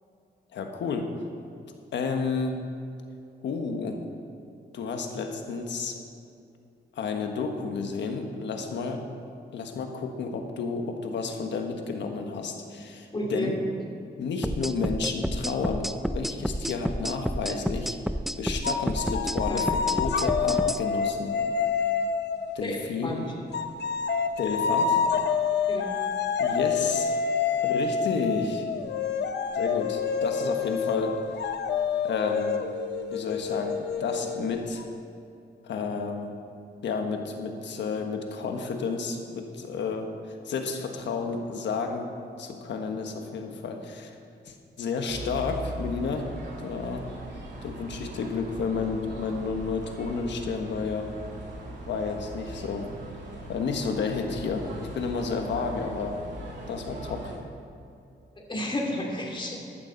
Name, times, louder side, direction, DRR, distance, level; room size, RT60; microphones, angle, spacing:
voice 1, 0.5-1.1 1.9-2.6 3.4-4.0 4.7-6.0 6.9-9.0 9.5-13.6 14.2-18.0 18.4-21.4 22.5-23.3 24.4-25.0 26.4-27.2 27.6-28.6 29.5-31.2 32.0-32.6 33.1-34.8 35.6-36.4 36.8-42.1 42.4-44.1 44.4-46.3 46.6-47.0 47.6-51.1 51.9-52.9 53.5-56.2 56.7-57.3, left 4 dB, 90° left, 4 dB, 1.3 m, -31 dB
voice 2, 13.1-13.5 19.5-19.6 22.6-23.2 25.7-25.8 58.5-59.7, left 1 dB, 25° left, -1 dB, 2.9 m, -31 dB
sound 1, 14.4-20.8, equal, ahead, 0.4 m, -30 dB
sound 2, 18.6-22.5 23.5-34.8, left 6 dB, 70° left, 0.7 m, -28 dB
sound 3, 45.1-57.4, right 1 dB, 85° right, 2.9 m, -40 dB
15.0 x 11.5 x 4.0 m, 2.6 s
cardioid pair, 95°, 18 cm